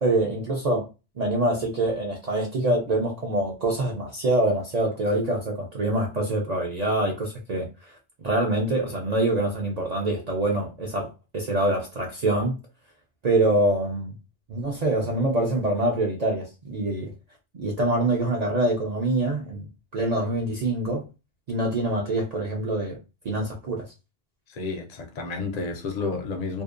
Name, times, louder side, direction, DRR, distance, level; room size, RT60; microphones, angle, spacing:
voice 1, 0.0-0.9 1.2-12.6 13.2-14.1 14.5-17.1 17.5-19.6 19.9-21.1 21.5-23.0 23.2-23.9, right 2 dB, 55° right, 0.4 m, -25 dB
voice 2, 24.5-26.6, left 4 dB, 65° left, 0.4 m, -31 dB
2.6 x 2.1 x 2.4 m
omnidirectional pair, 1.2 m